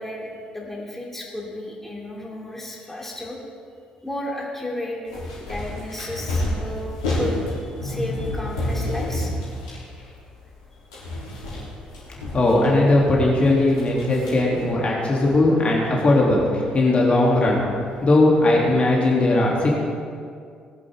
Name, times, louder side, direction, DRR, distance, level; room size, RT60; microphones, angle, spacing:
voice 1, 0.0-3.4 4.0-5.0 5.4-9.3, left 1 dB, 10° left, -3 dB, 3.0 m, -33 dB
sound 1, 5.1-10.6 10.9-13.0 13.5-14.7, left 1 dB, 75° left, 3.4 m, -29 dB
voice 2, 12.3-17.6 18.0-19.7, left 2 dB, 35° left, -3 dB, 3.0 m, -18 dB
19.5 x 10.5 x 3.7 m, 2.2 s
figure-of-eight pair, 45°, 4 cm